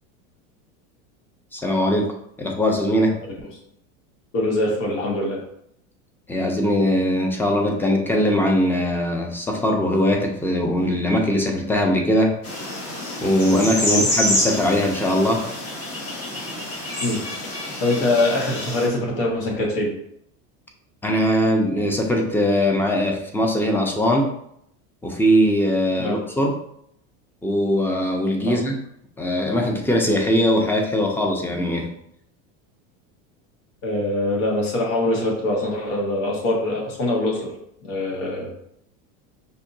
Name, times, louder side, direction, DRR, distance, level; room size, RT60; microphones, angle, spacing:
voice 1, 1.5-2.1 2.4-3.2 6.3-12.3 13.2-15.5 21.0-24.3 25.0-26.6 27.4-28.8 29.2-31.9, equal, 5° left, 1 dB, 0.5 m, -21 dB
voice 2, 4.3-5.4 13.9-14.1 17.0-19.9 26.0-26.2 28.5-28.6 33.8-37.5 37.8-38.5, left 1 dB, 65° left, -2 dB, 1.6 m, -23 dB
sound 1, 12.4-18.9, left 1 dB, 40° left, 1.4 m, -27 dB
5.5 x 2.8 x 2.7 m, 0.74 s
supercardioid pair, 125°, 38 cm